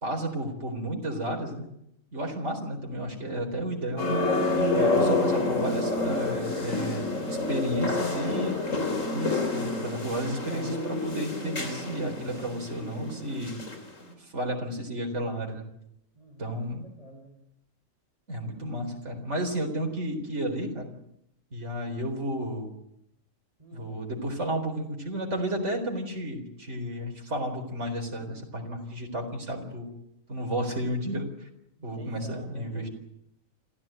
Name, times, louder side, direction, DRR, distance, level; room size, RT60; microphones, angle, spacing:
voice 1, 0.0-1.7 2.1-4.1 4.7-8.6 9.1-13.6 14.2-15.6 16.4-16.8 18.3-20.9 21.5-22.7 23.7-29.9 30.3-31.5 31.8-32.9, right 1 dB, 60° right, 2 dB, 4.5 m, -32 dB
sound 1, 4.0-13.8 14.1-14.2, left 2 dB, 70° left, 3.8 m, -28 dB
voice 2, 7.2-9.0 16.2-16.6 16.8-17.4 23.6-24.0 31.9-32.9, equal, 25° right, 1 dB, 3.7 m, -48 dB
26.5 x 15.0 x 9.1 m, 0.79 s
omnidirectional pair, 1.4 m